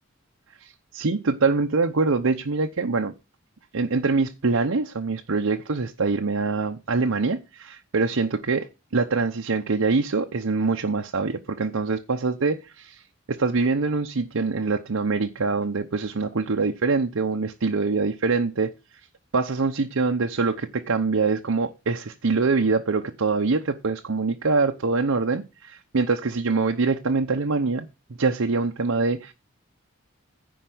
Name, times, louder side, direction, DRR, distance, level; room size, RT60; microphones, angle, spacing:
voice 1, 0.6-3.1 3.7-13.0 13.3-18.7 19.3-27.9 28.2-29.3, right 4 dB, 75° right, 0.8 m, -24 dB
10.0 x 4.5 x 7.8 m
head